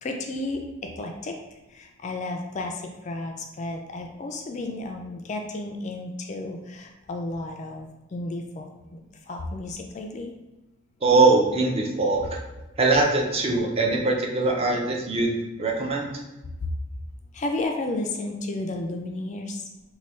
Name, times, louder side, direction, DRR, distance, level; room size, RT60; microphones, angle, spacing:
voice 1, 0.0-0.6 1.0-1.3 1.7-8.7 8.9-9.0 9.3-10.3 17.3-19.6, left 2 dB, 35° left, 3 dB, 0.3 m, -32 dB
voice 2, 11.0-12.4 12.8-16.1, right 3 dB, 30° right, 1 dB, 0.4 m, -22 dB
3.2 x 2.2 x 4.2 m, 1.1 s
head